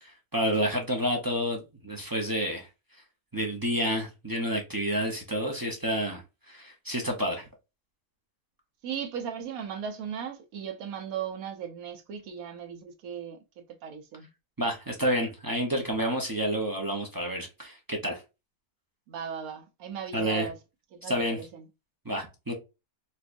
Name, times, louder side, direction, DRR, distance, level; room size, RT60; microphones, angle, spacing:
voice 1, 0.0-2.7 3.3-6.2 6.5-7.5 14.6-18.2 20.1-20.5 21.0-21.4 22.1-22.5, equal, 30° right, 0.4 m, -29 dB
voice 2, 8.8-14.3 19.1-20.6 20.9-21.7, right 8 dB, 75° right, 1.2 m, -37 dB
4.3 x 2.3 x 2.5 m
omnidirectional pair, 1.5 m